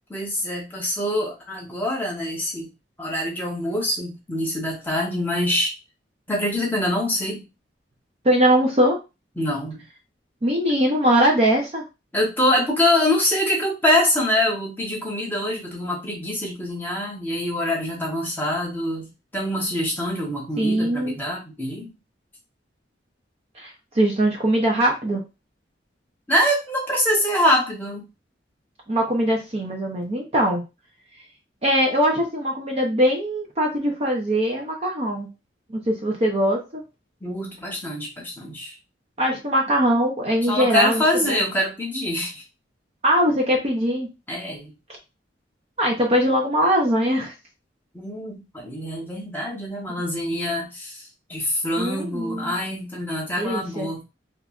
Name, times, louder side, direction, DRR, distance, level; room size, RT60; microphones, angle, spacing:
voice 1, 0.1-2.7 3.0-5.7 6.3-7.4 9.4-9.8 12.1-21.9 26.3-28.0 37.2-38.7 40.5-42.4 44.3-44.7 47.9-54.0, left 1 dB, 10° left, -2 dB, 1.0 m, -24 dB
voice 2, 8.2-9.0 10.4-11.8 20.6-21.2 23.6-25.2 28.9-30.6 31.6-35.3 35.7-36.8 39.2-41.4 43.0-44.1 45.8-47.3 51.8-52.5 53.4-53.9, equal, 35° right, 0 dB, 0.6 m, -21 dB
3.1 x 2.3 x 2.4 m, 0.26 s
head